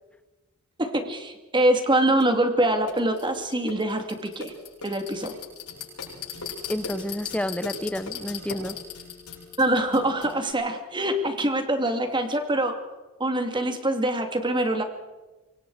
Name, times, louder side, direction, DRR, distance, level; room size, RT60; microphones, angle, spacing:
voice 1, 0.8-4.5 4.8-5.3 9.6-12.7 13.2-14.8, right 1 dB, 20° right, 6 dB, 2.7 m, -24 dB
sound 1, 2.2-2.3 2.9-10.5, left 5 dB, 90° left, 8.0 m, -38 dB
voice 2, 6.7-8.8, left 1 dB, 5° left, 14 dB, 0.7 m, -30 dB
26.0 x 21.5 x 5.0 m, 1.2 s
head